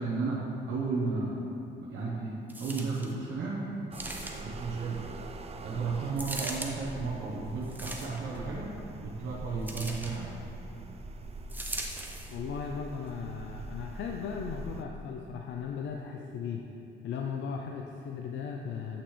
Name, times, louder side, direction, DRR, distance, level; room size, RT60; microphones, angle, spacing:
voice 1, 0.0-1.4 1.8-3.7 4.4-5.2 5.6-10.4, right 4 dB, 70° right, -5 dB, 0.9 m, -34 dB
sound 1, 2.5-3.1 3.9-4.6 6.2-6.7 7.6-8.4 9.7-10.2 11.5-12.4 13.1-13.2, right 1 dB, 10° right, 0.7 m, -39 dB
sound 2, 3.9-14.8, right 2 dB, 30° right, 0.5 m, -43 dB
voice 2, 12.3-16.7 17.0-19.0, left 6 dB, 70° left, 2 dB, 0.5 m, -37 dB
8.2 x 6.0 x 3.2 m, 3.0 s
cardioid pair, 90°, 20 cm